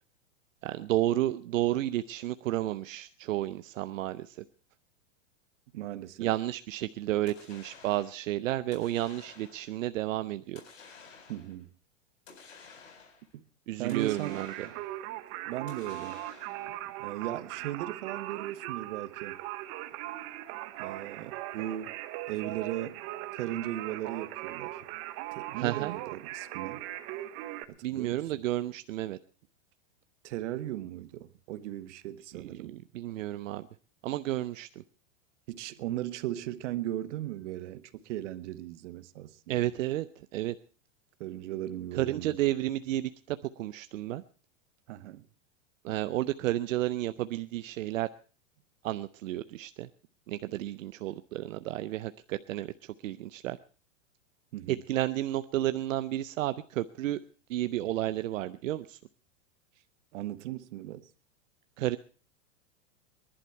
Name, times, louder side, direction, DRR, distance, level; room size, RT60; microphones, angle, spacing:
voice 1, 0.6-4.4 6.2-10.6 13.7-14.5 25.6-25.9 27.8-29.2 32.4-33.6 34.0-34.8 39.5-40.1 40.3-40.6 41.9-44.2 45.8-48.1 48.8-49.9 50.3-53.6 54.7-57.2 57.5-59.0 61.8-62.0, right 14 dB, 85° right, 0.6 m, -32 dB
voice 2, 5.7-6.3 11.3-11.7 13.3-13.4 13.8-14.7 15.5-16.2 17.0-19.4 20.8-22.0 22.3-23.0 23.3-24.8 25.3-26.9 27.7-28.2 30.2-32.8 35.5-39.7 41.2-42.4 44.9-45.3 54.5-54.8 60.1-61.1, right 13 dB, 65° right, 1.1 m, -37 dB
sound 1, 7.3-8.2 8.7-9.8 10.6-11.6 12.3-13.3 13.9-15.0 15.7-16.8, left 5 dB, 80° left, 4.5 m, -53 dB
Singing, 13.8-27.6, right 15 dB, 35° right, 0.9 m, -39 dB
21.0 x 11.5 x 4.5 m
supercardioid pair, 145°, 38 cm